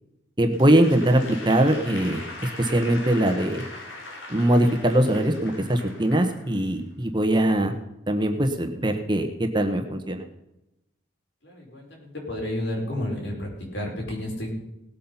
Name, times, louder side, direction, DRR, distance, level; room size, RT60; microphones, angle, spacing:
voice 1, 0.4-3.6 4.3-7.7 8.1-10.2, right 1 dB, 25° right, 5 dB, 1.2 m, -22 dB
Applause / Crowd, 0.5-6.8, left 2 dB, 85° left, 3.7 m, -40 dB
voice 2, 11.4-14.5, left 1 dB, 70° left, -1 dB, 5.3 m, -31 dB
18.5 x 8.6 x 5.7 m, 0.88 s
head